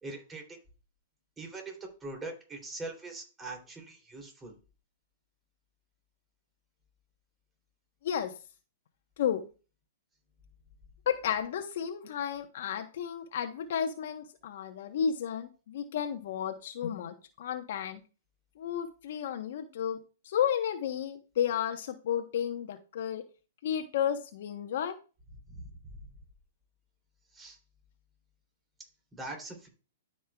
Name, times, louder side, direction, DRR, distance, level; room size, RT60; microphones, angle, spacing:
voice 1, 0.0-0.4 1.4-4.5 25.5-25.6 27.3-27.6 29.1-29.7, right 2 dB, 15° right, 2 dB, 2.9 m, -42 dB
voice 2, 8.0-8.3 9.2-9.4 11.1-18.0 18.6-20.0 20.2-23.2 23.6-25.0, left 9 dB, 65° left, 5 dB, 1.0 m, -32 dB
13.0 x 5.4 x 2.3 m, 0.34 s
hypercardioid pair, 135°, 0 cm